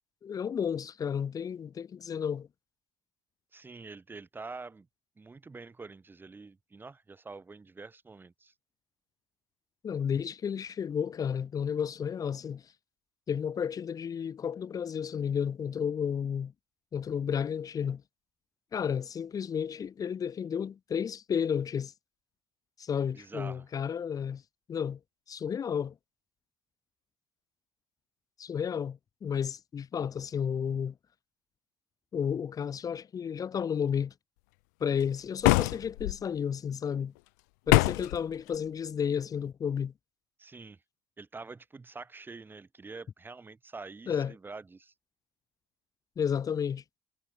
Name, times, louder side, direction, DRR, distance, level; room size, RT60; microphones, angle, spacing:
voice 1, 0.2-2.5 9.8-12.6 13.3-16.5 16.9-18.0 18.7-21.9 22.8-24.4 24.7-25.0 25.3-25.9 28.4-30.9 32.1-34.1 34.8-37.1 37.7-39.9 44.1-44.3 46.2-46.8, left 7 dB, 40° left, 4.2 m, -32 dB
voice 2, 3.5-4.9 5.2-8.5 23.1-23.7 40.4-40.8 41.2-44.9, right 4 dB, 20° right, 6.0 m, -46 dB
sound 1, 35.4-36.2 37.7-38.2, left 28 dB, 80° left, 0.8 m, -23 dB
hypercardioid pair, 75°, 9 cm